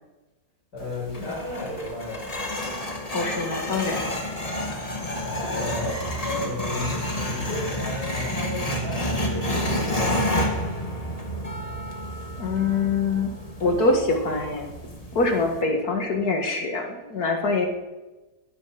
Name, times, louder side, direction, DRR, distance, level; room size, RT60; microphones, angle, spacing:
voice 1, 0.7-2.4 4.9-6.0 6.2-10.5, left 2 dB, 80° left, -7 dB, 6.2 m, -33 dB
sound 1, 0.8-15.6, equal, 20° left, 1.7 m, -30 dB
voice 2, 3.1-4.2 12.4-13.3 13.6-14.7 15.1-17.7, left 3 dB, 65° left, 3 dB, 2.5 m, -24 dB
20.0 x 9.3 x 6.1 m, 1.1 s
omnidirectional pair, 1.8 m